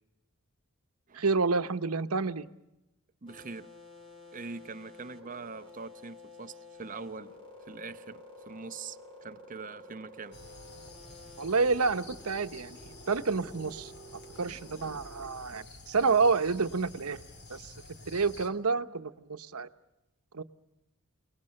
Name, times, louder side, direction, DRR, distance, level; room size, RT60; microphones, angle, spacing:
voice 1, 1.1-2.5 11.4-13.9 14.4-17.2 17.5-17.7 18.1-19.7 20.3-20.4, right 4 dB, 85° right, 1.0 m, -29 dB
voice 2, 3.2-3.7 4.3-7.4 7.7-10.4, right 4 dB, 40° right, 0.8 m, -43 dB
sound 1, 3.3-15.4, left 1 dB, 25° left, 5.2 m, -51 dB
sound 2, 10.3-18.5, left 2 dB, 50° left, 2.7 m, -50 dB
29.0 x 19.5 x 6.5 m
head